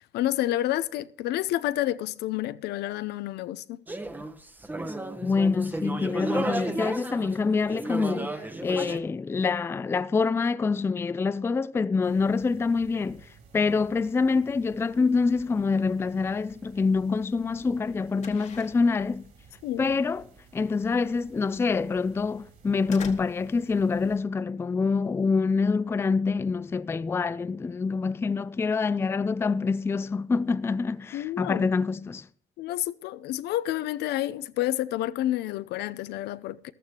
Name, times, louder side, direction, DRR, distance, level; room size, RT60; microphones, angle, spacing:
voice 1, 0.1-3.8 19.6-19.9 31.1-31.7 32.6-36.7, left 14 dB, 75° left, 0.6 m, -29 dB
sound 1, 3.9-9.0, right 2 dB, 10° right, 0.9 m, -33 dB
voice 2, 5.2-19.2 19.8-20.3 20.5-32.3, left 4 dB, 15° left, 0.3 m, -26 dB
sound 2, 12.0-24.2, right 5 dB, 50° right, 3.4 m, -55 dB
sound 3, 16.6-26.8, left 6 dB, 45° left, 1.4 m, -49 dB
14.0 x 12.5 x 2.9 m
cardioid pair, 110°, 17 cm